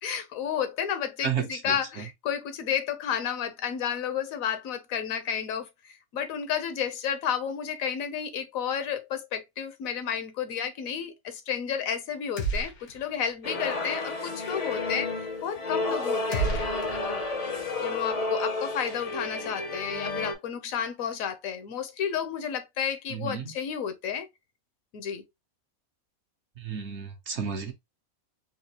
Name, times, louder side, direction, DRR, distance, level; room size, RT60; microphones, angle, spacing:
voice 1, 0.0-15.1 15.4-17.2 17.8-24.3 24.9-25.2, left 8 dB, 70° left, 1.0 m, -32 dB
voice 2, 1.2-1.8 23.1-23.5 26.6-27.7, right 7 dB, 60° right, 0.9 m, -32 dB
sound 1, 12.4-13.2 13.5-13.6 16.3-17.6, right 3 dB, 90° left, 1.4 m, -32 dB
sound 2, 13.4-20.3, left 3 dB, 45° left, 0.5 m, -31 dB
3.9 x 2.3 x 2.8 m
omnidirectional pair, 1.5 m